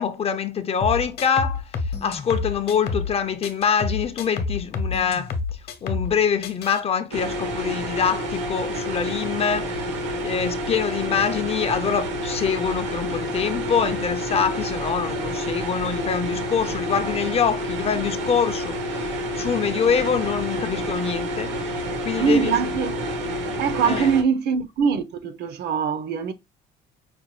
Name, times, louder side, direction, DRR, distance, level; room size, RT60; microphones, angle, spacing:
voice 1, 0.0-9.9 10.2-22.6 23.8-24.1, left 7 dB, 35° left, 0.4 m, -25 dB
sound 1, 0.8-3.2 3.4-6.2 6.4-6.8, left 4 dB, 55° left, 0.8 m, -28 dB
sound 2, 7.1-24.2, equal, 85° right, 1.3 m, -29 dB
voice 2, 22.2-23.0 23.6-26.3, right 6 dB, 60° right, 0.7 m, -22 dB
5.1 x 2.2 x 3.0 m
cardioid pair, 145°, 19 cm